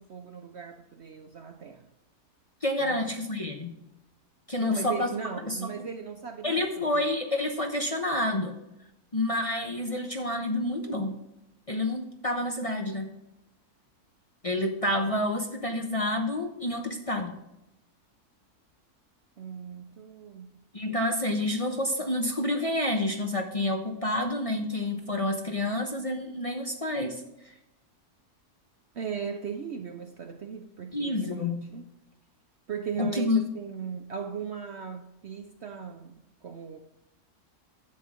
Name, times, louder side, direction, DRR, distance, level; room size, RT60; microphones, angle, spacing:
voice 1, 0.0-1.9 2.8-3.0 4.6-7.0 19.4-20.5 28.9-31.8 32.7-36.8, right 6 dB, 60° right, 0.8 m, -38 dB
voice 2, 2.6-3.7 4.5-5.1 5.5-5.7 6.4-8.6 9.1-11.2 11.7-13.1 14.4-17.3 20.7-27.2 30.9-31.6 33.0-33.4, left 1 dB, 25° left, 0.8 m, -28 dB
10.5 x 7.8 x 3.7 m
omnidirectional pair, 1.6 m